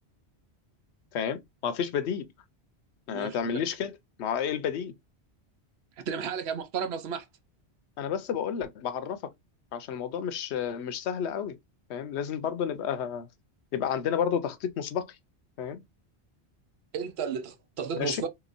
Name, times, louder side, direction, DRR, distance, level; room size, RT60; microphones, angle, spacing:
voice 1, 1.1-2.3 3.1-4.9 8.0-9.2 9.7-11.6 11.9-13.3 13.7-15.2 15.6-15.8 18.0-18.2, left 8 dB, 85° left, 0.9 m, -31 dB
voice 2, 3.1-3.6 6.0-7.3 16.9-18.3, right 7 dB, 75° right, 0.9 m, -33 dB
3.6 x 2.9 x 2.5 m
omnidirectional pair, 1.1 m